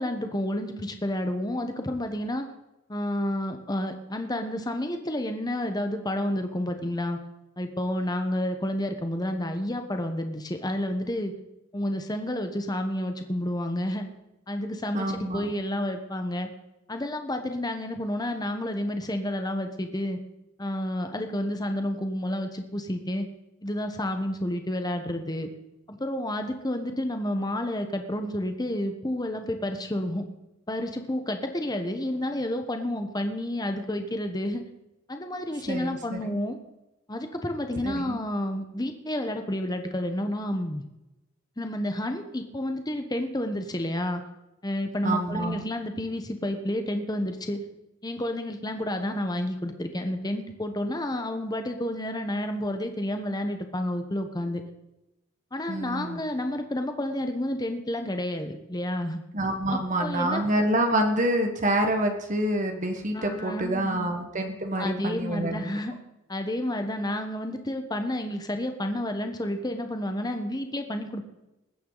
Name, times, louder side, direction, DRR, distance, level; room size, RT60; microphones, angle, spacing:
voice 1, 0.0-2.5 2.9-7.2 7.6-11.3 11.7-14.1 14.5-16.5 16.9-20.2 20.6-23.2 23.6-25.5 25.9-30.2 30.7-34.6 35.1-36.6 37.1-40.8 41.6-44.2 44.6-47.6 48.0-54.6 55.5-59.2 59.7-60.4 63.1-64.1 64.8-65.9 66.3-71.2, left 1 dB, 20° left, 6 dB, 1.1 m, -30 dB
voice 2, 14.9-15.5 35.7-36.4 37.8-38.2 45.0-45.6 55.7-56.2 59.3-65.6, right 1 dB, 35° right, 4 dB, 1.4 m, -27 dB
20.5 x 9.3 x 4.0 m, 0.96 s
head